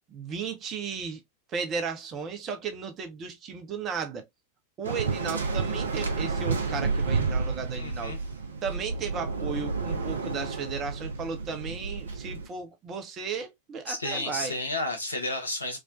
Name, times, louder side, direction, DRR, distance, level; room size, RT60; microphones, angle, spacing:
voice 1, 0.1-1.2 1.5-4.3 4.8-8.2 8.6-14.5, right 5 dB, 30° right, 0.6 m, -35 dB
Waves surf, 4.8-12.5, right 4 dB, 70° right, 0.5 m, -30 dB
voice 2, 7.8-8.2 13.9-15.8, left 2 dB, 80° left, 0.8 m, -32 dB
2.4 x 2.1 x 2.4 m
figure-of-eight pair, 90°, 0 cm